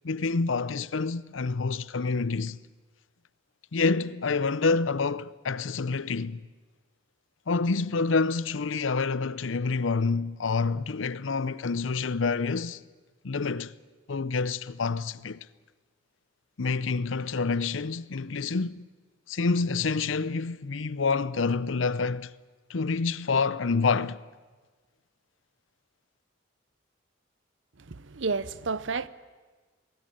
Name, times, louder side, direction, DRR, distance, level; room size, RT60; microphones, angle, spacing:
voice 1, 0.0-2.6 3.7-6.4 7.5-12.8 13.2-13.8 14.1-15.4 16.6-18.9 19.3-22.3 22.7-24.2, left 4 dB, 85° left, 0.7 m, -27 dB
voice 2, 27.9-29.1, right 4 dB, 70° right, 0.8 m, -31 dB
22.5 x 18.0 x 9.0 m
head